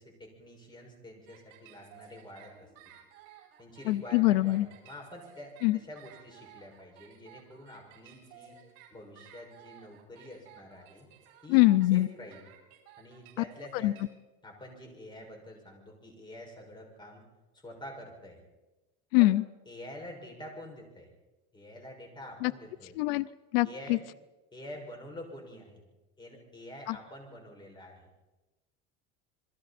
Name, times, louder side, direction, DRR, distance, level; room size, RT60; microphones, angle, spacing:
voice 1, 0.0-2.9 3.6-8.6 8.9-11.1 11.4-11.6 11.9-12.5 13.0-14.0 14.4-17.2 17.6-18.4 19.2-19.4 19.7-21.1 21.5-23.0 23.6-24.1 24.5-25.8 26.2-28.1, left 1 dB, 15° left, 2 dB, 6.1 m, -47 dB
sound 1, 1.3-14.0, right 9 dB, 60° right, 7.9 m, -55 dB
voice 2, 3.9-4.7 5.6-5.8 11.5-12.1 13.8-13.9 19.1-19.4 22.4-22.5 23.0-23.3 23.5-24.0 26.9-27.0, left 18 dB, 85° left, 18 dB, 0.6 m, -23 dB
28.5 x 22.0 x 4.3 m, 1.1 s
cardioid pair, 140°, 29 cm